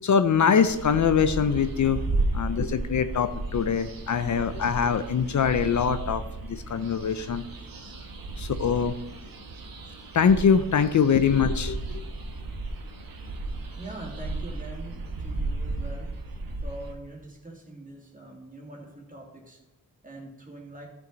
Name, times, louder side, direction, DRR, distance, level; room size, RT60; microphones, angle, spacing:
voice 1, 0.0-2.0 2.3-6.2 6.5-7.4 8.4-8.9 10.1-12.0, left 7 dB, 55° left, 10 dB, 0.5 m, -23 dB
sound 1, 0.6-16.9, right 2 dB, 75° right, 1.2 m, -34 dB
voice 2, 13.5-16.1 16.6-19.6 20.0-20.9, right 2 dB, 25° right, -1 dB, 2.5 m, -43 dB
12.0 x 5.9 x 3.9 m, 0.96 s
wide cardioid pair, 85°, 35 cm